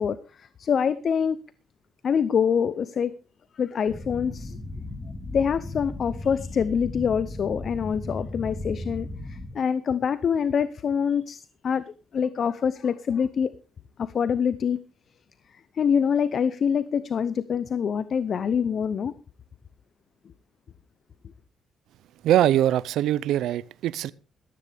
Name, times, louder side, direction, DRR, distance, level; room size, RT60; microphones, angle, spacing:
voice 1, 0.0-1.4 2.0-3.1 3.6-4.6 5.3-13.5 14.0-14.8 15.7-19.1, left 7 dB, 55° left, 0.7 m, -25 dB
sound 1, 3.9-9.5, left 2 dB, 15° left, 3.6 m, -36 dB
voice 2, 22.2-24.1, right 12 dB, 80° right, 0.5 m, -22 dB
14.5 x 13.5 x 3.5 m
cardioid pair, 90°, 0 cm